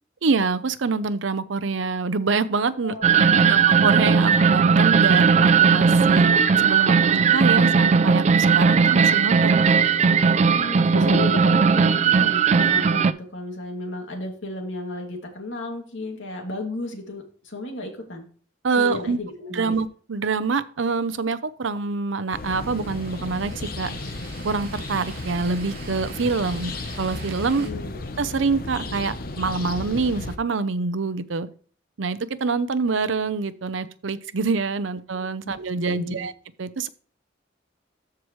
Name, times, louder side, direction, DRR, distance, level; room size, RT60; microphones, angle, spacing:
voice 1, 0.2-9.6 18.6-19.2 19.5-23.9 24.4-26.7 27.0-27.7 28.2-31.5 32.0-36.3 36.6-36.9, right 4 dB, 85° right, 14 dB, 0.6 m, -26 dB
voice 2, 2.8-3.5 10.5-18.3 18.8-19.8 27.6-28.0 35.4-35.5 35.8-36.3, left 2 dB, 85° left, 2 dB, 2.4 m, -33 dB
sound 1, 3.0-13.1, right 5 dB, 35° right, 0.4 m, -17 dB
sound 2, 22.3-30.4, left 2 dB, 50° left, 0.8 m, -34 dB
sound 3, 22.5-27.7, right 3 dB, 55° right, 2.9 m, -44 dB
13.5 x 4.8 x 3.1 m, 0.43 s
head